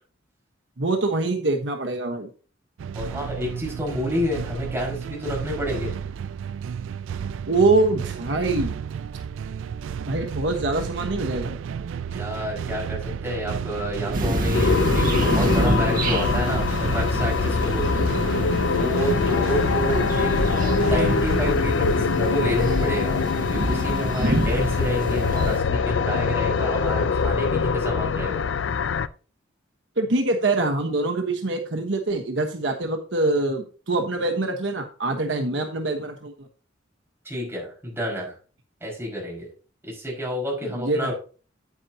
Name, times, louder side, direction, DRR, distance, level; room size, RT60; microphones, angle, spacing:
voice 1, 0.8-2.3 7.5-8.7 10.1-11.5 30.0-36.5 40.6-41.1, right 2 dB, 70° right, 4 dB, 1.2 m, -24 dB
sound 1, 2.8-21.6, right 7 dB, 85° right, 0.3 m, -32 dB
voice 2, 3.0-6.0 12.1-18.1 18.6-28.5 37.3-38.4 38.8-39.5 39.8-41.1, equal, 10° right, -3 dB, 5.1 m, -29 dB
sound 2, 14.1-25.6, right 1 dB, 45° right, 1.8 m, -27 dB
sound 3, 14.5-29.1, left 5 dB, 75° left, 0.5 m, -23 dB
9.6 x 9.0 x 2.8 m, 0.37 s
head